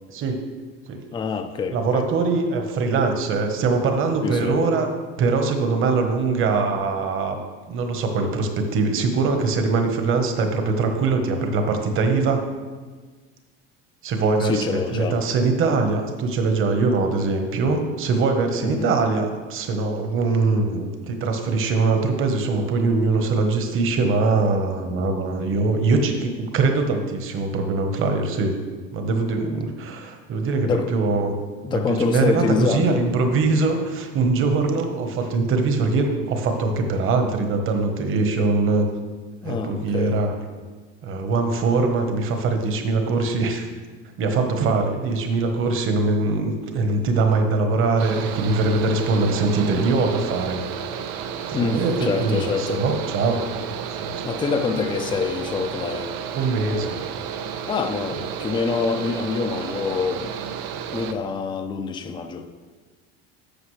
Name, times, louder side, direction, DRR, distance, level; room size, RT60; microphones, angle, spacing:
voice 1, 0.1-0.5 0.9-1.1 1.7-4.9 5.2-7.4 7.7-12.4 14.0-28.5 28.9-31.3 31.7-38.9 39.4-40.3 41.0-43.7 44.2-50.6 51.5-53.4 53.9-54.2 56.3-57.0 58.1-58.2, right 3 dB, 45° right, 1.3 m, -22 dB
voice 2, 1.1-2.1 4.2-4.6 14.4-15.2 18.6-18.9 30.6-30.9 31.6-33.0 39.4-40.2 51.5-52.8 54.2-56.2 57.7-60.3 60.9-62.5, left 5 dB, 15° left, 0.5 m, -26 dB
Mechanical fan, 48.0-61.1, right 8 dB, 85° right, 0.7 m, -32 dB
12.0 x 7.2 x 3.3 m
supercardioid pair, 125°, 29 cm